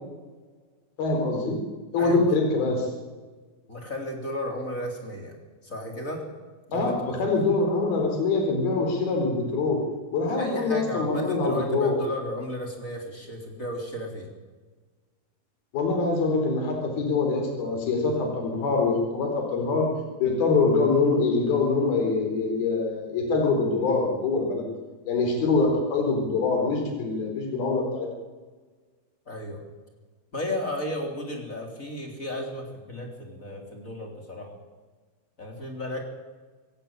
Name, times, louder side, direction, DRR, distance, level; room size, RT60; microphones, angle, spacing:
voice 1, 1.0-1.6 1.9-2.9 6.7-9.8 10.1-12.0 15.7-19.9 20.2-24.6 25.1-28.1, left 3 dB, 80° left, 2 dB, 6.0 m, -24 dB
voice 2, 3.7-5.4 5.6-6.3 6.7-7.2 10.3-14.3 29.3-29.6 30.3-34.5 35.4-36.0, left 1 dB, 20° left, 2 dB, 3.7 m, -34 dB
24.5 x 16.0 x 8.9 m, 1.4 s
omnidirectional pair, 4.3 m